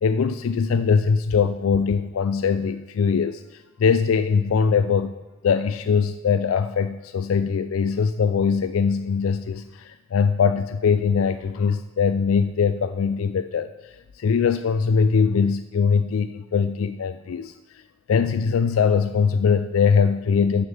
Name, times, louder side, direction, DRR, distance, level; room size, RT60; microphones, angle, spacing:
voice 1, 0.0-5.1 5.4-17.8 18.1-20.7, left 6 dB, 75° left, 11 dB, 0.4 m, -22 dB
7.3 x 6.6 x 7.0 m, 1.1 s
head